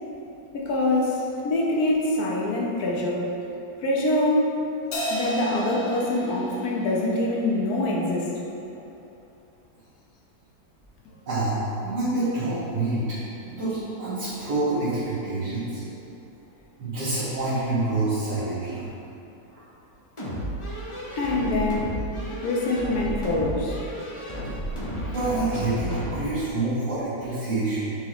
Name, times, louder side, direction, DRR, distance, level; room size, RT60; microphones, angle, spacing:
voice 1, 0.5-3.2 3.8-4.5 5.1-8.3 21.1-22.0 22.4-23.8, left 1 dB, 60° left, -3 dB, 1.2 m, -24 dB
Crash cymbal, 4.9-7.6, equal, 80° left, 1.5 m, -34 dB
voice 2, 11.3-13.0 13.4-15.8 16.8-18.9 24.9-28.0, right 2 dB, 70° right, -17 dB, 2.3 m, -27 dB
sound 1, 20.2-26.4, right 1 dB, 45° left, 0.4 m, -32 dB
7.0 x 4.4 x 3.0 m, 3.0 s
omnidirectional pair, 1.9 m